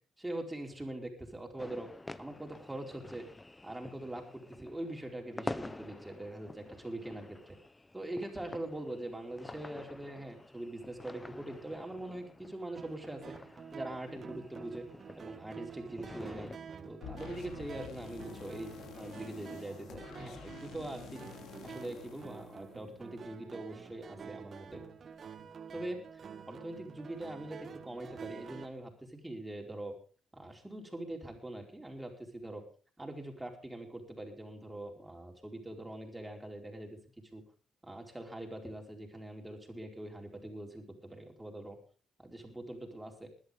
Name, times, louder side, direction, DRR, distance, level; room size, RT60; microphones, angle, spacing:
voice 1, 0.2-1.9 2.2-3.2 3.6-7.6 7.9-13.3 13.7-14.9 15.2-16.5 16.8-21.2 21.6-24.8 25.7-26.0 26.5-29.9 30.3-32.6 33.0-37.0 37.3-37.4 37.8-41.8 42.2-43.3, right 1 dB, 10° right, 1 dB, 4.6 m, -43 dB
sound 1, 1.6-16.6, left 2 dB, 15° left, 0.8 m, -48 dB
sound 2, 12.8-28.7, right 6 dB, 45° right, 2.0 m, -48 dB
sound 3, 17.0-23.2, left 7 dB, 75° left, 2.9 m, -49 dB
20.0 x 12.0 x 3.7 m, 0.37 s
cardioid pair, 90°, 0 cm